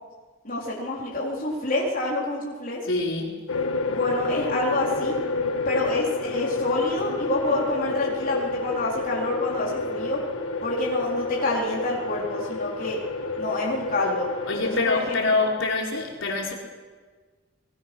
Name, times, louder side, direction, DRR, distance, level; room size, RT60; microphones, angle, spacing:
voice 1, 0.4-2.8 3.9-5.2 5.7-10.2 10.6-13.0 13.4-14.3 14.6-15.3, left 2 dB, 40° left, -4 dB, 4.2 m, -27 dB
voice 2, 2.8-3.3 14.4-16.5, left 3 dB, 65° left, -1 dB, 4.8 m, -25 dB
sound 1, 3.5-14.8, left 3 dB, 80° left, 1.6 m, -29 dB
27.0 x 21.5 x 6.3 m, 1.4 s
head